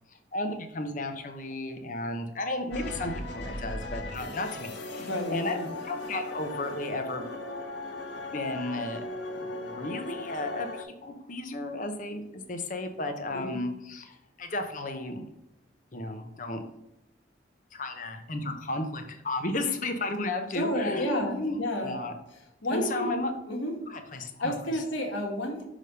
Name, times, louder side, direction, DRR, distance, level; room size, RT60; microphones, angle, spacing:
voice 1, 0.1-5.6 5.8-7.3 8.3-9.0 9.3-15.2 15.9-16.6 17.7-22.1 22.7-23.3 23.9-24.8, left 2 dB, 40° left, 5 dB, 0.8 m, -34 dB
sound 1, 2.7-10.8, left 2 dB, 70° left, 1.0 m, -38 dB
voice 2, 5.0-5.7 13.3-13.6 20.5-21.9 22.6-23.1 23.5-23.7 24.1-25.6, left 1 dB, 85° left, 0 dB, 1.6 m, -31 dB
6.2 x 3.4 x 5.4 m, 0.86 s
head